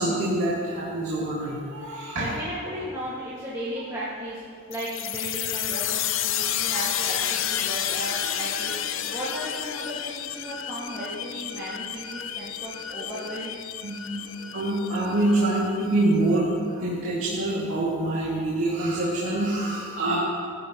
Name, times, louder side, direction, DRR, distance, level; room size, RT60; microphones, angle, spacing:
voice 1, 0.0-2.3 13.8-20.2, right 1 dB, 80° right, -8 dB, 2.4 m, -25 dB
voice 2, 2.2-4.4 4.7-8.7 9.0-13.6, equal, 15° right, -10 dB, 1.9 m, -35 dB
sound 1, 4.7-16.1, left 10 dB, 65° left, 0.5 m, -31 dB
19.5 x 12.0 x 3.1 m, 2.2 s
head